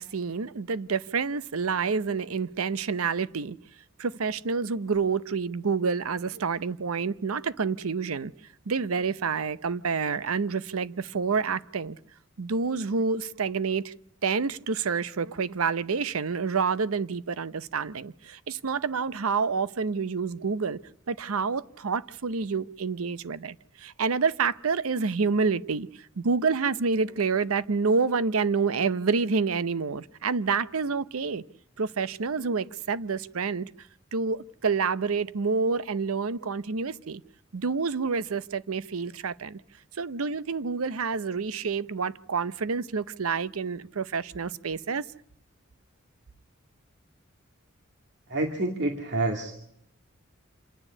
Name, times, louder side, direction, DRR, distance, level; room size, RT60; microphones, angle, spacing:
voice 1, 0.0-3.6 4.0-8.3 8.7-12.0 12.4-13.9 14.2-20.8 21.1-25.9 26.2-31.4 31.8-33.7 34.1-37.2 37.5-39.6 40.0-45.0, right 5 dB, 85° right, 0.7 m, -28 dB
voice 2, 48.3-49.6, right 2 dB, 55° right, 2.1 m, -28 dB
27.5 x 9.9 x 9.8 m
head